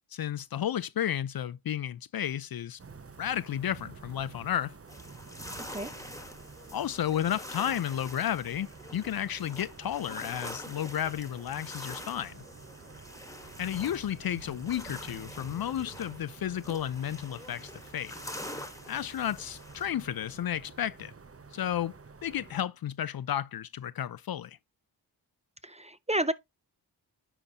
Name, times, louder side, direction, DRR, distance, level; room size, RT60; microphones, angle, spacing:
voice 1, 0.1-2.8 3.2-4.7 6.7-12.4 13.6-18.2 18.9-21.1 21.5-21.9 22.2-24.6, left 10 dB, 55° left, 0.5 m, -32 dB
sound 1, 2.8-22.6, right 4 dB, 30° right, 0.9 m, -50 dB
sound 2, 4.9-19.9, left 1 dB, 5° left, 1.3 m, -45 dB
voice 2, 25.6-26.3, right 1 dB, 15° right, 0.5 m, -30 dB
10.0 x 3.9 x 2.8 m
cardioid pair, 45°, 44 cm